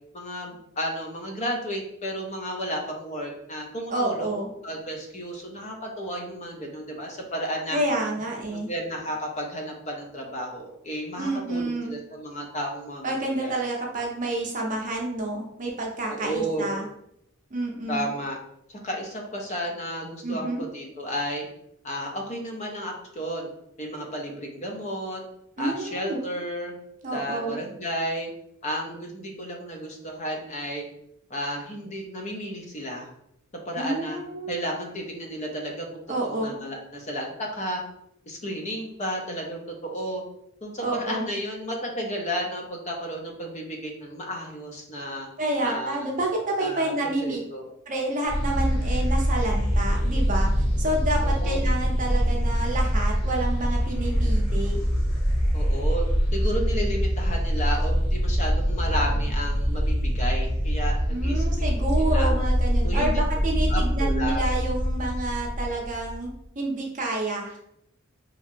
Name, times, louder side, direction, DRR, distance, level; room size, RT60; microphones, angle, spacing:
voice 1, 0.1-4.3 4.6-7.8 8.3-13.5 16.1-16.7 17.9-18.4 18.8-21.5 21.8-23.5 23.8-25.2 25.6-26.7 27.1-28.3 28.6-30.9 31.3-33.1 33.7-34.2 34.5-37.8 38.3-40.2 40.6-45.3 45.6-46.1 46.6-47.6 51.2-51.6 55.5-56.0 56.3-62.3 62.8-63.2 63.7-64.4, equal, 35° left, 1 dB, 0.5 m, -32 dB
voice 2, 3.9-4.5 7.7-8.7 11.2-11.9 13.0-16.9 17.5-18.1 20.2-20.6 25.6-26.2 27.0-27.6 33.8-34.6 36.1-36.5 40.8-41.3 45.4-47.4 47.9-50.5 50.8-54.8 61.1-66.3 66.6-67.6, right 1 dB, 40° right, -1 dB, 0.6 m, -29 dB
sound 1, 48.3-66.3, equal, 85° left, 1.0 m, -24 dB
2.9 x 2.6 x 2.5 m, 0.77 s
head